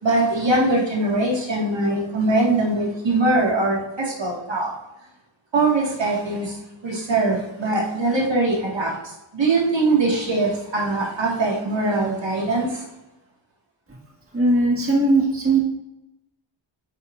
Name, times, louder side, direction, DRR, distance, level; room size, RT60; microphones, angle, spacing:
voice 1, 0.0-4.7 5.5-6.6 6.8-12.8, right 2 dB, 60° right, -3 dB, 1.7 m, -22 dB
voice 2, 14.3-15.6, right 2 dB, 25° right, -2 dB, 1.6 m, -18 dB
8.5 x 5.7 x 2.4 m, 0.94 s
wide cardioid pair, 85°, 49 cm